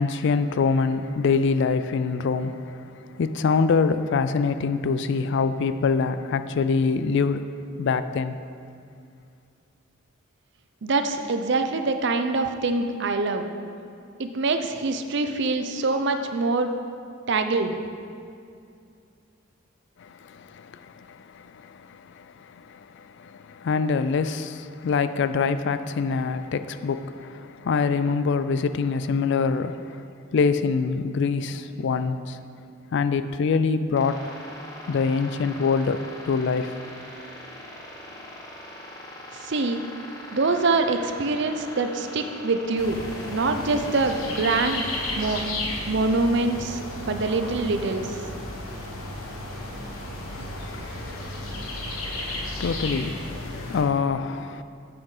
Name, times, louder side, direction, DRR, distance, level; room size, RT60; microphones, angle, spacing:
voice 1, 0.0-7.4 7.8-8.4 20.0-30.0 30.3-32.4 32.9-34.2 34.9-36.7 50.3-54.6, left 5 dB, 55° left, 0.3 m, -25 dB
voice 2, 10.8-13.5 14.2-16.7 17.3-17.8 39.3-39.8 40.3-43.0 43.3-44.8 45.2-45.4 45.9-48.1, right 3 dB, 55° right, 0.6 m, -24 dB
sound 1, 33.9-45.3, left 1 dB, 15° left, 1.0 m, -41 dB
sound 2, 42.8-53.8, left 1 dB, 80° left, 1.3 m, -33 dB
8.0 x 7.0 x 4.9 m
head